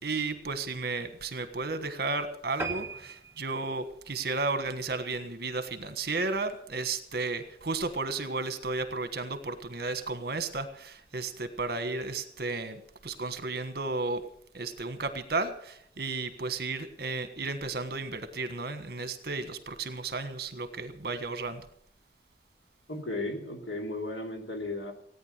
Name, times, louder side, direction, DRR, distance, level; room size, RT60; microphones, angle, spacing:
voice 1, 0.0-14.2 14.5-21.7, right 3 dB, 55° right, 10 dB, 1.4 m, -33 dB
sound 1, 2.6-5.3 5.8-6.0 6.5-6.6 6.9-7.0 7.2-7.3, right 4 dB, 15° right, 1.4 m, -40 dB
voice 2, 22.9-24.9, left 2 dB, 85° left, 3 dB, 2.8 m, -35 dB
17.5 x 9.4 x 6.7 m, 0.70 s
head